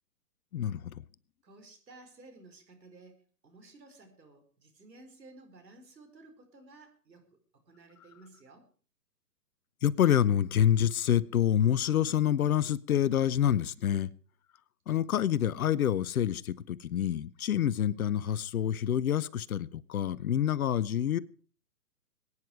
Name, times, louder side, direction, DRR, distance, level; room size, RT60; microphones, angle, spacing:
voice 1, 0.5-1.0 9.8-14.1 14.9-21.2, left 10 dB, 60° left, 0.8 m, -27 dB
voice 2, 1.4-8.7 13.7-13.9, right 2 dB, 85° right, 4.7 m, -55 dB
21.5 x 9.8 x 4.9 m
hypercardioid pair, 140°, 49 cm